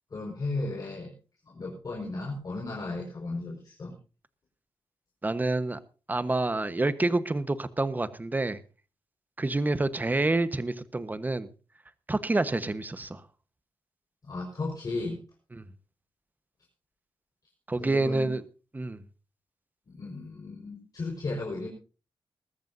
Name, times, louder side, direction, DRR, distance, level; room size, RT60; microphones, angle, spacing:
voice 1, 0.1-1.1 1.5-3.9 14.2-15.2 17.8-18.3 19.9-21.7, left 2 dB, 45° left, 5.1 m, -35 dB
voice 2, 5.2-5.8 6.1-8.6 9.4-11.5 12.1-13.2 15.5-15.6 17.7-18.4 18.7-19.0, right 2 dB, 20° right, 1.2 m, -28 dB
21.5 x 14.0 x 2.7 m
cardioid pair, 100°, 9 cm